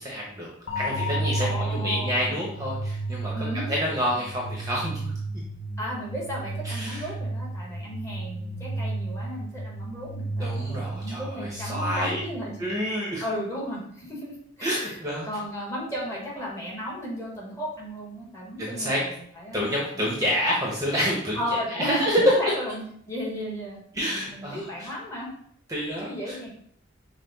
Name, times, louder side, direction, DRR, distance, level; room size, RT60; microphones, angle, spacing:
voice 1, 0.0-5.1 6.6-7.0 10.4-12.2 12.6-13.2 14.6-15.3 18.6-19.0 19.5-22.3 23.9-24.9 25.7-26.4, equal, 15° right, -4 dB, 0.8 m, -28 dB
sound 1, 0.7-12.6, right 2 dB, 85° left, 0.7 m, -32 dB
voice 2, 1.4-2.2 3.3-3.7 5.8-12.6 13.2-15.0 15.2-20.1 21.3-23.8 24.1-25.3 26.0-26.5, equal, 15° left, -5 dB, 1.2 m, -35 dB
5.6 x 2.1 x 4.0 m, 0.63 s
head